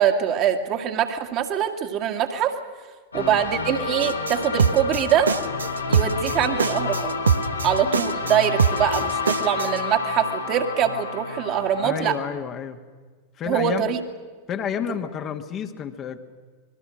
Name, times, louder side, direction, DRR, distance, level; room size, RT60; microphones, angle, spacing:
voice 1, 0.0-2.5 3.1-5.3 5.9-7.1 7.6-12.2 13.5-14.0, right 9 dB, 35° right, 5 dB, 2.2 m, -23 dB
sound 1, 3.1-12.4, left 4 dB, 75° left, 2.1 m, -29 dB
voice 2, 3.2-3.5 11.8-12.8 13.4-13.8 14.5-16.2, left 8 dB, 30° left, 6 dB, 1.6 m, -30 dB
sound 2, 4.0-9.8, right 6 dB, 70° right, 0.9 m, -23 dB
26.5 x 21.0 x 6.4 m, 1.4 s
figure-of-eight pair, 90°, 0 cm